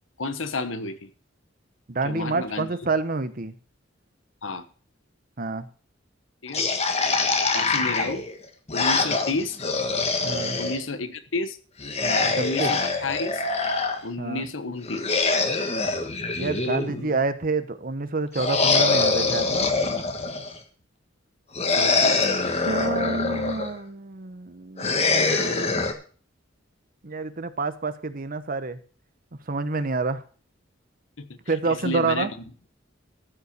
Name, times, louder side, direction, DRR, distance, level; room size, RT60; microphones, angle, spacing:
voice 1, 0.2-1.1 2.0-2.7 4.4-4.6 6.4-6.6 7.5-8.2 8.7-9.6 10.6-11.6 12.4-13.5 14.0-15.0 21.7-22.3 25.1-25.7 31.2-31.4 31.7-32.3, left 3 dB, 90° left, 12 dB, 1.1 m, -31 dB
voice 2, 1.9-3.5 5.4-5.7 10.2-10.6 12.0-12.7 14.2-14.5 16.3-19.7 22.6-25.5 27.0-28.8 29.5-30.2 31.5-32.3, right 3 dB, 50° right, 11 dB, 1.0 m, -28 dB
sound 1, 6.5-10.8 11.8-14.0 14.8-17.2 18.3-20.6 21.5-23.7 24.8-25.9, left 3 dB, 35° left, 1.5 m, -24 dB
13.5 x 5.6 x 6.8 m, 0.41 s
head